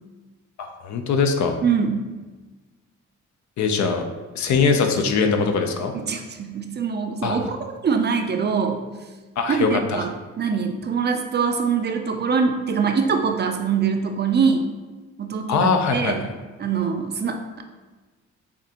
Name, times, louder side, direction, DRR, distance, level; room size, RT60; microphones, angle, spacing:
voice 1, 0.6-1.6 3.6-4.1 4.4-5.9 7.2-7.5 9.4-10.0 15.5-16.3, left 5 dB, 65° left, 5 dB, 0.7 m, -22 dB
voice 2, 1.6-2.0 5.9-8.8 9.5-14.7 15.2-16.3 16.6-17.6, right 5 dB, 35° right, 5 dB, 0.5 m, -23 dB
7.0 x 2.5 x 2.9 m, 1.3 s
cardioid pair, 90°, 30 cm